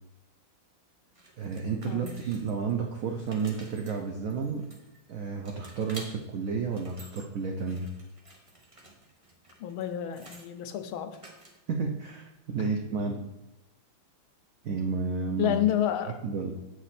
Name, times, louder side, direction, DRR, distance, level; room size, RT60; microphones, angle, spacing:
sound 1, 1.2-2.7 3.1-5.1 5.5-6.1 6.6-7.2 7.6-10.5 11.1-11.8, right 1 dB, 30° right, 0.5 m, -50 dB
voice 1, 1.4-4.7 5.1-7.9 11.7-13.3 14.6-15.6 16.1-16.5, right 5 dB, 75° right, 2 dB, 0.7 m, -31 dB
voice 2, 9.6-11.1 12.6-12.7 13.0-13.2 15.4-16.1, left 10 dB, 85° left, 8 dB, 1.5 m, -29 dB
7.4 x 5.0 x 4.2 m, 1.0 s
omnidirectional pair, 2.2 m